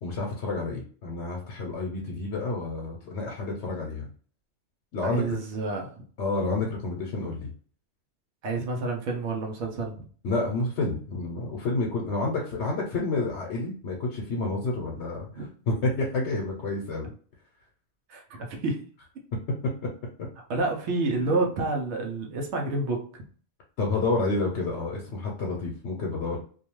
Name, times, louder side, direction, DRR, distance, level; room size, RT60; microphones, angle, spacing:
voice 1, 0.0-4.1 4.9-5.4 6.2-7.5 10.2-17.1 21.2-21.3 23.8-26.4, left 3 dB, 80° left, -1 dB, 0.9 m, -29 dB
voice 2, 5.0-6.1 8.4-10.0 15.3-15.5 18.1-18.9 20.5-23.2, right 3 dB, 85° right, 1 dB, 0.9 m, -29 dB
2.5 x 2.2 x 2.9 m, 0.44 s
omnidirectional pair, 1.1 m